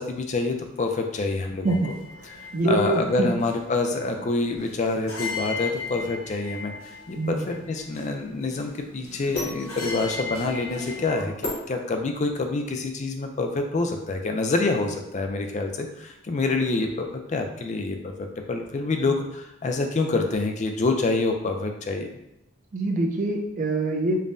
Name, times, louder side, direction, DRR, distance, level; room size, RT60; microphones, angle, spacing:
voice 1, 0.0-1.8 2.4-11.3 11.7-22.1, left 3 dB, 35° left, 4 dB, 0.4 m, -27 dB
sound 1, 1.6-11.2, left 4 dB, 80° left, 1.0 m, -38 dB
voice 2, 1.6-3.3 7.2-7.5 22.7-24.2, right 2 dB, 40° right, 1 dB, 0.4 m, -25 dB
sound 2, 9.3-12.5, left 2 dB, 55° left, 1.0 m, -37 dB
5.2 x 2.2 x 2.5 m, 0.83 s
head